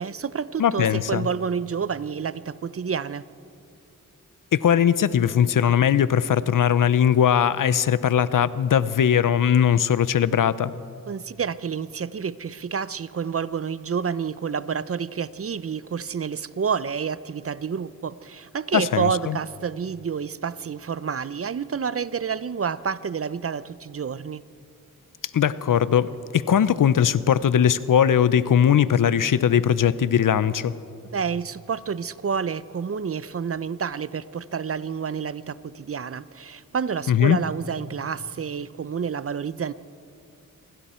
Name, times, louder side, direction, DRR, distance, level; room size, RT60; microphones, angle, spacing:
voice 1, 0.0-3.3 11.1-24.4 31.1-39.7, right 6 dB, 40° right, 17 dB, 0.6 m, -29 dB
voice 2, 0.6-1.3 4.5-10.7 18.7-19.4 25.3-30.7 37.1-37.4, left 8 dB, 70° left, 16 dB, 0.7 m, -20 dB
26.5 x 23.5 x 4.4 m, 2.5 s
cardioid pair, 70°, 34 cm